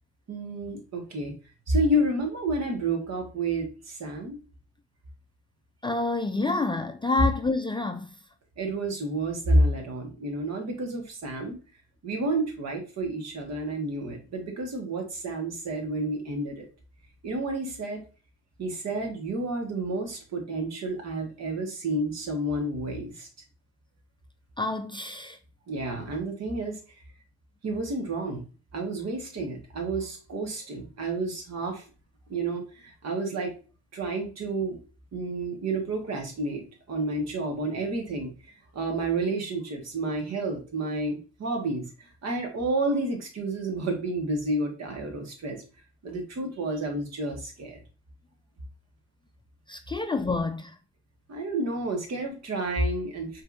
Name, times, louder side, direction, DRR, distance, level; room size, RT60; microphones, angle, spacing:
voice 1, 0.3-1.3 1.7-4.4 8.6-11.6 12.0-16.7 17.2-18.0 18.6-23.3 25.7-26.8 27.6-28.4 28.7-31.9 32.3-33.5 33.9-34.8 35.1-36.6 36.9-38.3 38.7-45.6 46.0-47.8 51.3-53.4, right 2 dB, 60° right, 1.7 m, -30 dB
voice 2, 5.8-8.1 24.6-25.4 49.7-50.8, left 3 dB, 15° left, 0.4 m, -28 dB
5.4 x 3.5 x 2.6 m
cardioid pair, 90°, 30 cm